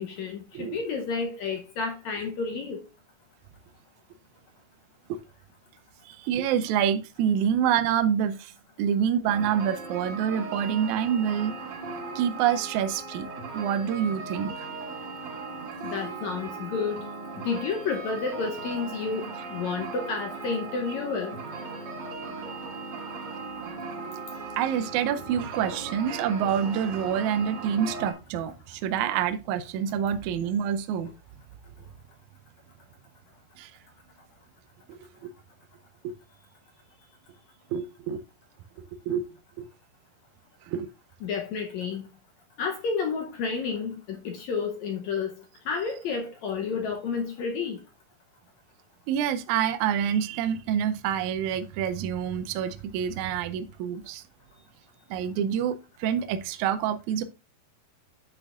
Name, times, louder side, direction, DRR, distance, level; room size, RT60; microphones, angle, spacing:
voice 1, 0.0-2.8 15.8-17.0 17.4-21.4 41.2-42.0 42.6-45.3 45.7-47.8, left 5 dB, 70° left, 1.8 m, -30 dB
voice 2, 6.1-8.5 8.8-11.6 12.2-13.3 13.5-14.5 24.6-31.1 33.6-33.7 34.9-35.3 36.0-36.1 37.7-38.2 39.1-39.2 39.6-39.7 40.7-40.9 49.1-54.2 55.1-57.2, right 9 dB, 80° right, 1.8 m, -27 dB
sound 1, 9.3-28.1, right 4 dB, 55° right, 2.8 m, -38 dB
9.9 x 6.2 x 2.4 m
omnidirectional pair, 4.0 m